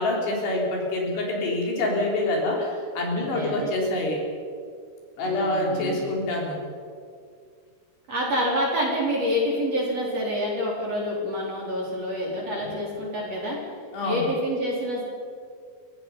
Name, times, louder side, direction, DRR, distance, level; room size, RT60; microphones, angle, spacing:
voice 1, 0.0-4.2 5.2-6.6 13.9-14.3, left 2 dB, 65° left, -1 dB, 5.5 m, -26 dB
voice 2, 3.2-3.7 5.2-6.1 8.1-13.6 14.0-15.0, equal, 35° right, -3 dB, 4.7 m, -27 dB
29.5 x 16.0 x 5.6 m, 2.1 s
omnidirectional pair, 5.3 m